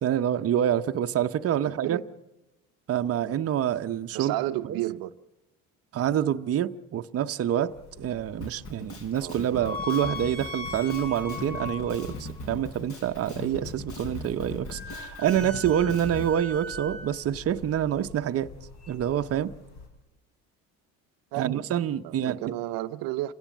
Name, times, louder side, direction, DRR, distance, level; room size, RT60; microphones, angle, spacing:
voice 1, 0.0-2.0 2.9-4.3 4.7-4.8 5.9-18.5 18.9-19.5 21.4-22.4, right 10 dB, 40° right, 0.9 m, -27 dB
voice 2, 1.5-2.0 4.1-5.1 9.2-9.4 21.3-21.7 22.0-23.3, right 16 dB, 70° right, 0.8 m, -32 dB
sound 1, 7.7-19.9, left 2 dB, 65° left, 5.2 m, -40 dB
Drum kit, 8.4-16.3, left 2 dB, 40° left, 4.5 m, -40 dB
26.5 x 16.5 x 7.3 m
cardioid pair, 105°, 36 cm